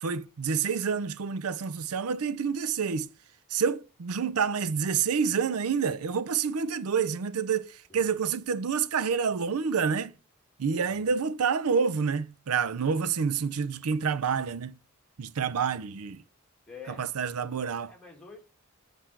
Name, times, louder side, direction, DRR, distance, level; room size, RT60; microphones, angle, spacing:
voice 1, 0.0-3.1 3.5-10.1 10.6-14.8 15.2-16.2 17.0-17.9, right 6 dB, 85° right, 0.5 m, -28 dB
voice 2, 10.8-11.2 16.7-17.1 17.9-18.4, left 4 dB, 5° left, 2.0 m, -48 dB
8.0 x 4.9 x 4.5 m
head